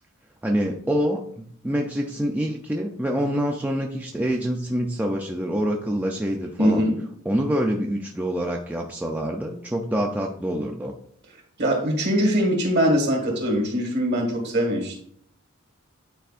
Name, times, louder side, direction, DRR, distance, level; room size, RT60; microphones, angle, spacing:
voice 1, 0.4-6.8 7.3-10.9, equal, 10° right, 1 dB, 0.4 m, -26 dB
voice 2, 6.6-7.0 11.6-14.9, equal, 50° right, 1 dB, 1.7 m, -22 dB
9.1 x 4.4 x 2.5 m, 0.64 s
head